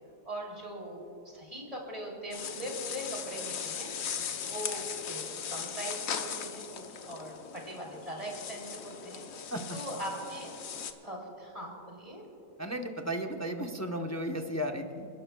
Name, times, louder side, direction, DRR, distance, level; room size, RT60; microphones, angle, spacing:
voice 1, 0.2-1.0 1.3-3.9 4.4-5.2 5.5-10.5 11.0-12.3, right 1 dB, 25° right, -2 dB, 3.4 m, -41 dB
sound 1, 2.3-10.9, left 7 dB, 70° left, 1.2 m, -39 dB
voice 2, 12.6-15.1, equal, 15° left, 3 dB, 0.6 m, -34 dB
30.0 x 12.0 x 2.3 m, 2.7 s
omnidirectional pair, 1.5 m